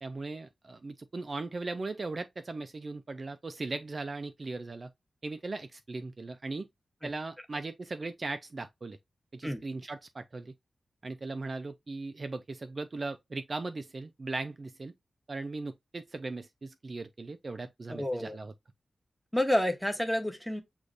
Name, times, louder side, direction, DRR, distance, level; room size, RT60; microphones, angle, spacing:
voice 1, 0.0-4.9 5.2-6.7 7.0-9.0 9.3-10.5 11.0-14.9 15.3-18.5, right 3 dB, 35° right, 0.4 m, -38 dB
voice 2, 17.9-18.4 19.3-20.6, left 1 dB, ahead, 0.9 m, -29 dB
6.4 x 3.1 x 2.5 m
wide cardioid pair, 155°, 0 cm